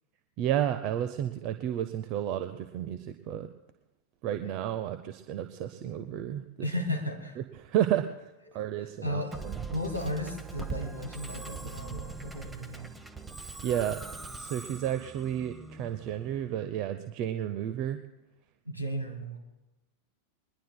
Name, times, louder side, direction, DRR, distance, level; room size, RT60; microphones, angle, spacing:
voice 1, 0.4-3.5 4.2-6.5 7.4-9.6 11.3-11.5 13.6-14.0 14.3-18.0, right 11 dB, 40° right, 10 dB, 0.6 m, -32 dB
voice 2, 6.6-7.4 8.5-8.6 9.0-9.4 9.7-13.0 18.7-19.4, left 1 dB, 85° right, 5 dB, 2.1 m, -35 dB
Musical instrument, 9.3-16.6, right 4 dB, 10° right, 1.0 m, -42 dB
22.5 x 20.5 x 2.2 m, 1.0 s
figure-of-eight pair, 90°, 0 cm